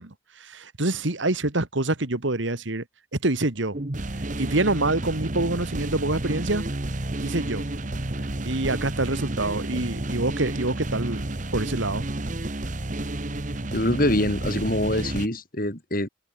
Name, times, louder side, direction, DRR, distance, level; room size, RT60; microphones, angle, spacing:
voice 1, 0.0-2.8 3.2-3.8 4.4-6.7 7.2-7.7 8.4-12.0, right 2 dB, 70° right, 1.9 m, -26 dB
sound 1, 3.7-15.3, right 1 dB, 40° right, 1.3 m, -31 dB
voice 2, 13.7-16.1, left 1 dB, 45° left, 3.9 m, -24 dB
head